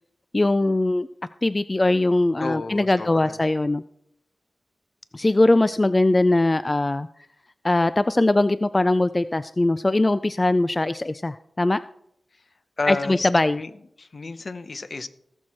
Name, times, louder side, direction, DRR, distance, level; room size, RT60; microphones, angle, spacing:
voice 1, 0.3-1.1 1.4-3.8 5.1-7.1 7.6-11.8 12.9-13.6, left 2 dB, 30° left, 14 dB, 0.4 m, -21 dB
voice 2, 2.4-3.4 12.8-13.3 13.6-13.7 14.0-15.1, left 3 dB, 55° left, 11 dB, 0.8 m, -30 dB
18.5 x 6.3 x 4.3 m, 0.76 s
cardioid pair, 50°, 0 cm